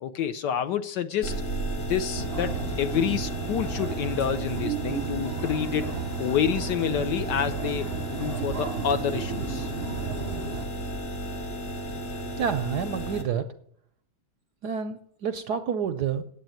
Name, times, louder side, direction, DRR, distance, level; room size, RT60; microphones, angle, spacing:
voice 1, 0.0-1.4 1.8-9.7, left 9 dB, 65° left, 1.2 m, -28 dB
sound 1, 1.2-13.2, right 1 dB, 50° left, 2.3 m, -33 dB
sound 2, 2.2-10.7, right 6 dB, 45° right, 0.8 m, -34 dB
voice 2, 12.4-13.5 14.6-16.2, right 7 dB, 70° right, 1.0 m, -28 dB
9.0 x 8.2 x 9.2 m
omnidirectional pair, 2.3 m